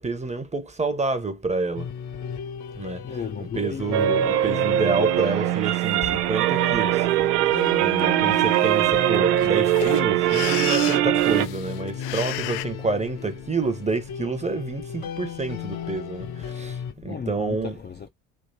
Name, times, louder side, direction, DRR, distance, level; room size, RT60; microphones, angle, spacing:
voice 1, 0.0-1.9 2.8-3.0 3.6-7.3 7.8-17.8, right 3 dB, 15° right, 1.0 m, -28 dB
sound 1, 1.8-16.9, left 8 dB, 50° left, 1.0 m, -36 dB
voice 2, 3.0-4.1 6.0-6.1 16.8-18.1, left 6 dB, 25° left, 0.6 m, -35 dB
sound 2, 3.9-11.5, right 13 dB, 85° right, 0.5 m, -21 dB
sound 3, 5.8-5.9 6.4-6.8 7.5-7.7 8.0-8.1 8.3-12.7, left 14 dB, 75° left, 0.6 m, -34 dB
3.3 x 2.9 x 2.8 m
hypercardioid pair, 55°, 45 cm